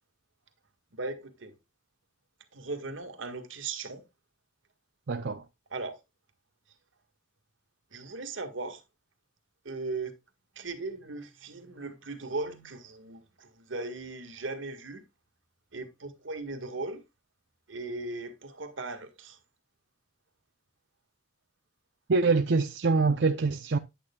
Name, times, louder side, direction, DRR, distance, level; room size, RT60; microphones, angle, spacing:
voice 1, 0.9-1.5 2.5-4.0 5.7-5.9 7.9-8.8 9.6-10.1 10.5-15.0 15.7-17.0 17.7-19.4, right 3 dB, 85° right, 1.8 m, -38 dB
voice 2, 5.1-5.4 22.1-23.8, right 4 dB, 65° right, 0.6 m, -25 dB
10.0 x 9.1 x 2.3 m
head